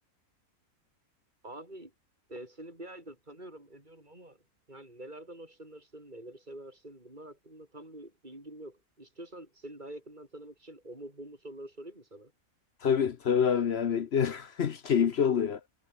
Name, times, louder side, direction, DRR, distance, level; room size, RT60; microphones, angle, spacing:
voice 1, 1.4-1.9 2.3-4.4 4.7-12.3, right 1 dB, 30° right, 7.9 m, -46 dB
voice 2, 12.8-15.6, left 7 dB, 55° left, 1.0 m, -26 dB
omnidirectional pair, 1.5 m